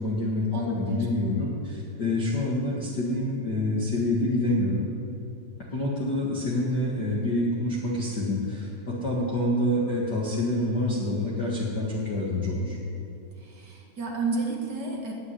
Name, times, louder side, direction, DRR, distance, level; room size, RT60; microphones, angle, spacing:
voice 1, 0.0-4.9 5.7-12.8, left 1 dB, 70° left, -4 dB, 0.9 m, -27 dB
voice 2, 0.5-1.1 13.4-15.1, right 3 dB, 55° right, -1 dB, 1.1 m, -31 dB
18.5 x 6.4 x 9.8 m, 2.7 s
omnidirectional pair, 4.8 m